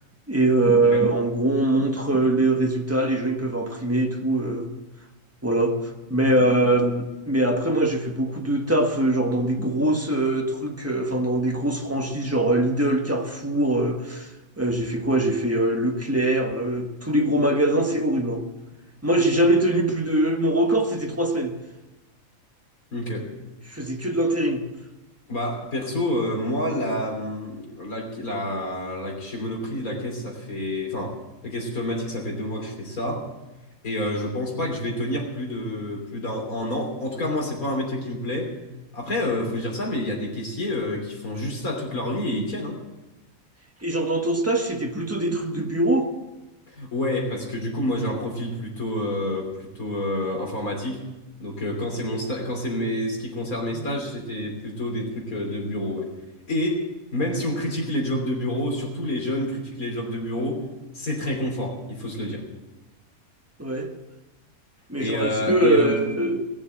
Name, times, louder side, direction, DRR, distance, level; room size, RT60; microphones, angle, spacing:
voice 1, 0.3-4.7 5.4-5.8 6.1-14.3 14.6-18.4 19.0-21.5 23.7-24.6 43.8-46.1 53.7-53.9 63.6-63.9 64.9-66.4, right 1 dB, 10° right, 2 dB, 1.4 m, -22 dB
voice 2, 22.9-23.3 25.3-31.2 31.4-33.3 33.8-38.5 38.9-42.8 46.7-51.0 51.4-56.1 56.5-60.7 60.9-62.5 65.0-66.0, left 1 dB, 85° left, 1 dB, 3.6 m, -28 dB
18.5 x 7.2 x 7.7 m, 1.1 s
omnidirectional pair, 1.5 m